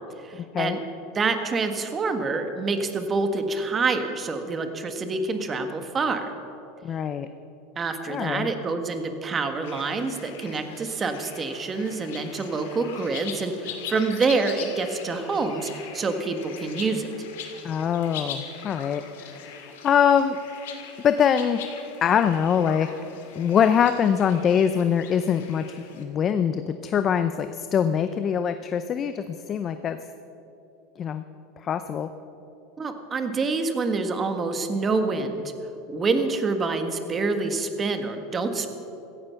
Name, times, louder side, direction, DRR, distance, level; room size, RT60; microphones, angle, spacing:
voice 1, 0.2-0.8 1.1-6.3 7.8-17.1 32.8-35.5 35.9-38.7, right 3 dB, 25° right, 7 dB, 1.5 m, -27 dB
voice 2, 6.8-7.3 8.1-8.5 17.6-20.4 21.0-21.6 22.0-22.9 23.4-30.0 31.0-31.2 31.6-32.1, left 8 dB, 35° left, 10 dB, 0.6 m, -23 dB
sound 1, 9.6-26.0, left 7 dB, 85° left, 2.4 m, -41 dB
16.0 x 15.0 x 5.8 m, 2.9 s
supercardioid pair, 125°, 0 cm